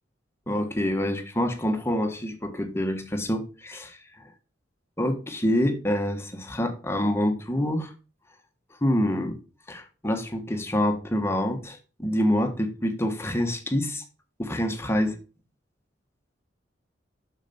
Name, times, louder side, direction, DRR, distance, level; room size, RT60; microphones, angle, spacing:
voice 1, 0.5-4.2 5.0-7.9 8.8-9.4 9.7-14.0 14.4-15.2, equal, 15° left, 1.3 m, -26 dB
7.1 x 6.6 x 4.3 m
head